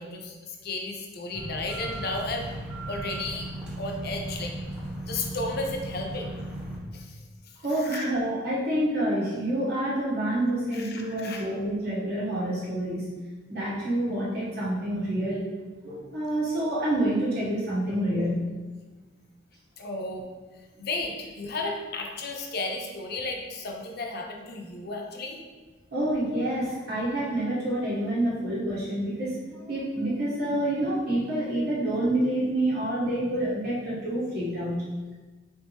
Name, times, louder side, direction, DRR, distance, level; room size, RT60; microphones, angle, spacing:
voice 1, 0.0-2.5 2.9-3.5 3.8-4.6 5.1-6.3 6.9-7.2 7.7-8.1 10.7-11.5 19.8-20.3 20.8-25.4, left 2 dB, 60° left, 2 dB, 0.6 m, -33 dB
sound 1, 1.3-6.8, right 1 dB, 5° right, 0.9 m, -36 dB
voice 2, 7.6-13.1 13.5-15.5 15.8-18.5 25.9-29.4 29.7-34.8, right 1 dB, 60° right, -7 dB, 1.2 m, -27 dB
4.1 x 3.5 x 3.0 m, 1.3 s
head